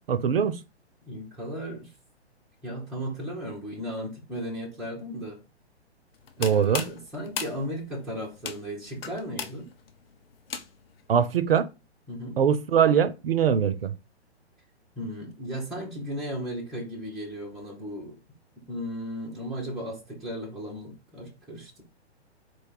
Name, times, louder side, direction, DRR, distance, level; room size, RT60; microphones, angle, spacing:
voice 1, 0.1-0.6 6.4-6.8 11.1-11.7 12.4-13.9, right 8 dB, 60° right, 0.5 m, -22 dB
voice 2, 1.0-1.9 2.6-5.4 6.4-9.7 12.1-12.4 15.0-18.2 18.7-21.8, equal, ahead, 0.4 m, -35 dB
sound 1, 6.1-11.0, left 6 dB, 60° left, 0.6 m, -37 dB
4.2 x 2.2 x 4.6 m
figure-of-eight pair, 115°, 34 cm